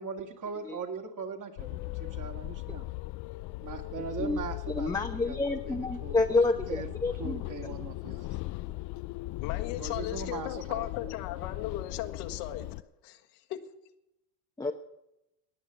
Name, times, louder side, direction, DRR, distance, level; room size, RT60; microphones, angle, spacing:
voice 1, 0.0-2.9 3.6-4.9 5.3-5.4 5.7-6.2 6.7-6.9 7.2-8.4 9.8-10.9, right 5 dB, 40° right, 4 dB, 2.3 m, -40 dB
sound 1, 1.6-12.8, left 19 dB, 40° left, 0.4 m, -38 dB
voice 2, 4.8-7.4 14.6-14.7, left 3 dB, 10° left, 2 dB, 0.9 m, -28 dB
voice 3, 9.4-12.7 13.0-13.6, left 13 dB, 70° left, 5 dB, 1.7 m, -37 dB
19.5 x 6.5 x 8.4 m, 0.88 s
supercardioid pair, 100°, 48 cm